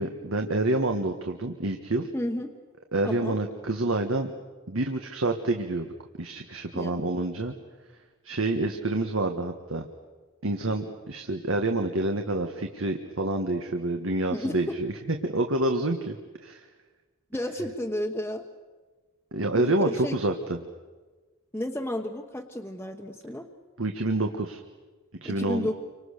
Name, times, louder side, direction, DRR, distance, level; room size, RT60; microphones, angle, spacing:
voice 1, 0.0-2.1 2.9-4.3 4.7-5.9 6.2-7.5 8.2-9.9 10.4-14.9 15.2-16.2 16.4-16.6 19.3-20.6 23.8-24.6 25.2-25.7, right 2 dB, 75° right, 5 dB, 1.6 m, -27 dB
voice 2, 2.1-2.5 3.0-3.4 6.7-7.0 14.3-14.8 17.3-18.5 19.5-20.2 21.5-23.5 25.2-25.8, left 1 dB, 10° left, -1 dB, 1.2 m, -32 dB
29.5 x 25.5 x 6.7 m, 1.3 s
head